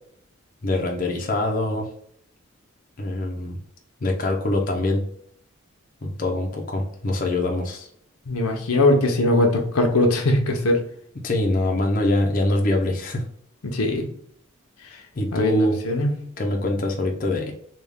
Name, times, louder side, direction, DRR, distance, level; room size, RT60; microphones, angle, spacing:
voice 1, 0.6-1.9 3.0-3.6 4.0-5.0 6.0-7.9 11.1-13.2 15.1-15.8 16.4-17.5, left 1 dB, 40° left, 1 dB, 0.5 m, -24 dB
voice 2, 8.3-10.8 13.7-14.0 15.3-16.1, left 2 dB, 90° left, 3 dB, 0.7 m, -20 dB
3.3 x 2.3 x 3.5 m, 0.67 s
head